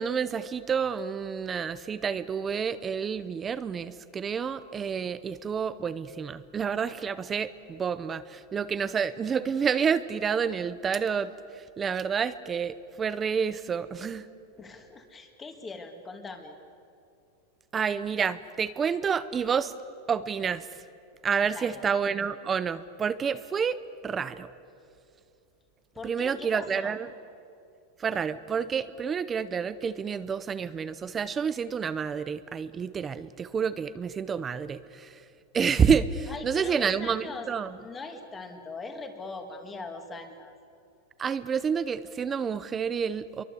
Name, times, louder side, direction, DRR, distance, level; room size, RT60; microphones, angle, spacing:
voice 1, 0.0-14.3 17.7-19.7 20.1-20.7 21.2-23.8 24.0-24.5 26.0-27.1 28.0-35.2 35.5-37.7 41.2-43.4, right 6 dB, 15° right, 15 dB, 0.6 m, -29 dB
voice 2, 14.6-16.5 21.5-21.8 25.9-27.0 36.3-37.5 37.8-40.5, left 3 dB, 15° left, 5 dB, 2.3 m, -41 dB
28.0 x 23.5 x 8.4 m, 2.6 s
supercardioid pair, 170°, 0 cm